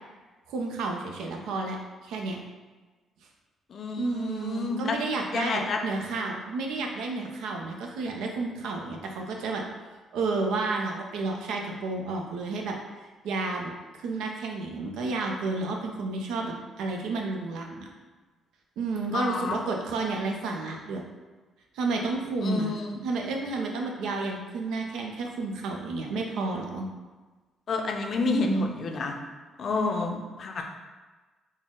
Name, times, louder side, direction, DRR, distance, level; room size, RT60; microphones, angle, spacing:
voice 1, 0.5-1.8 2.0-2.4 4.0-9.7 10.1-17.9 18.8-21.0 21.7-22.7 23.0-26.9 28.2-28.7, right 3 dB, 85° right, 1 dB, 0.5 m, -31 dB
voice 2, 3.7-5.0 5.3-5.8 19.1-19.6 22.4-23.0 27.7-29.1 29.6-30.6, left 4 dB, 55° left, 3 dB, 0.5 m, -29 dB
3.9 x 2.0 x 3.7 m, 1.3 s
cardioid pair, 90°, 0 cm